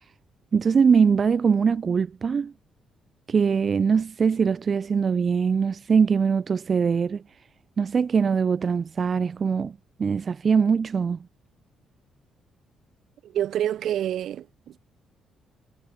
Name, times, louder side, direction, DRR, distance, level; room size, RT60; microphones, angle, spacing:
voice 1, 0.5-2.5 3.3-7.2 7.8-11.3, right 6 dB, 45° right, 1.9 m, -22 dB
voice 2, 13.2-14.8, right 11 dB, 75° right, 2.1 m, -28 dB
cardioid pair, 90°, 0 cm